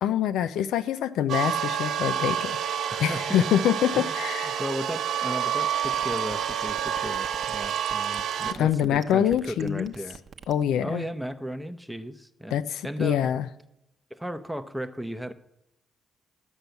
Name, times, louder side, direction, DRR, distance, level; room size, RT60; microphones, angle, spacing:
voice 1, 0.0-2.6 3.0-4.6 8.6-9.9 10.5-11.1 12.5-13.5, left 10 dB, 80° left, 0.4 m, -25 dB
sound 1, 1.3-8.5, right 9 dB, 80° right, 1.1 m, -28 dB
voice 2, 2.9-3.4 3.9-4.1 4.5-10.2 10.8-13.3 14.1-15.3, equal, ahead, 0.7 m, -35 dB
sound 2, 5.5-10.6, right 6 dB, 45° right, 0.8 m, -44 dB
11.5 x 5.5 x 8.1 m
cardioid pair, 90°, 0 cm